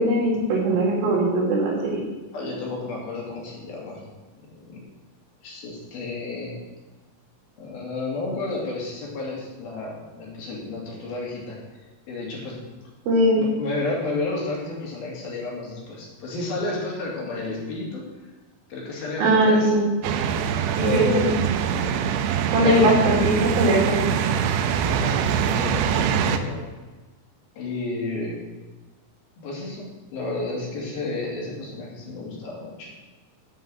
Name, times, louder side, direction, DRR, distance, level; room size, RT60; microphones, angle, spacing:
voice 1, 0.0-2.0 13.1-13.4 19.2-19.8 20.8-21.3 22.5-24.0, right 1 dB, 65° right, -2 dB, 4.0 m, -20 dB
voice 2, 2.3-4.0 4.5-4.8 5.4-6.5 7.6-11.6 12.1-12.5 13.4-18.0 18.7-19.7 20.8-21.4 22.6-22.9 24.9-26.6 27.6-28.4 29.4-32.9, left 3 dB, 65° left, -3 dB, 4.4 m, -31 dB
sound 1, 20.0-26.4, right 8 dB, 85° right, 2.7 m, -24 dB
8.9 x 7.7 x 7.8 m, 1.3 s
omnidirectional pair, 4.7 m